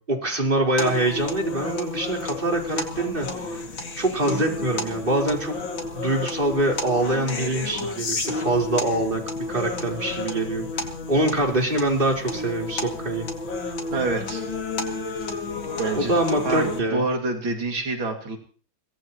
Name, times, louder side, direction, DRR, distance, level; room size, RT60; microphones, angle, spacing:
voice 1, 0.0-3.6 4.0-5.5 5.9-9.2 9.5-10.8 11.1-13.3 16.0-17.0, right 1 dB, 25° right, 0 dB, 4.2 m, -24 dB
sound 1, 0.8-16.8, left 3 dB, 70° left, 3.0 m, -31 dB
voice 2, 13.9-14.4 15.8-16.1 16.4-18.4, right 3 dB, 80° right, 3 dB, 3.1 m, -26 dB
24.5 x 18.0 x 3.0 m, 0.41 s
omnidirectional pair, 2.1 m